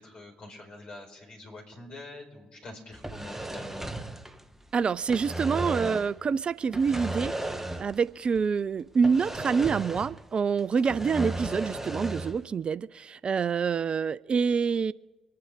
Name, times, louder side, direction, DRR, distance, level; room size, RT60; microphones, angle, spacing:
voice 1, 0.0-3.9, left 2 dB, 45° left, 1 dB, 4.4 m, -45 dB
sound 1, 2.9-4.7 5.0-6.2 6.7-8.1 8.3-8.5 9.0-10.3 10.6-12.4, right 1 dB, 10° right, 1.2 m, -35 dB
voice 2, 4.7-14.9, right 6 dB, 40° right, 18 dB, 0.3 m, -27 dB
25.5 x 9.5 x 3.7 m, 1.2 s
figure-of-eight pair, 40°, 3 cm